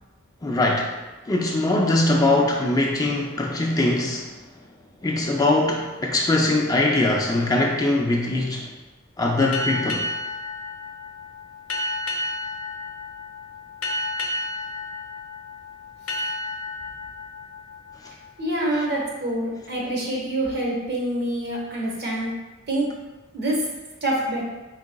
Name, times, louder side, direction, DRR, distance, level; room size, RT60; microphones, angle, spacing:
voice 1, 0.4-0.9 1.3-4.3 5.0-8.7 9.2-10.1, left 2 dB, 20° left, -1 dB, 0.3 m, -21 dB
sound 1, 9.5-18.8, left 1 dB, 80° left, 0.6 m, -32 dB
voice 2, 18.4-22.3 22.7-22.9 23.3-23.6 24.0-24.4, right 1 dB, 50° right, -3 dB, 1.1 m, -26 dB
4.6 x 3.7 x 2.2 m, 1.2 s
head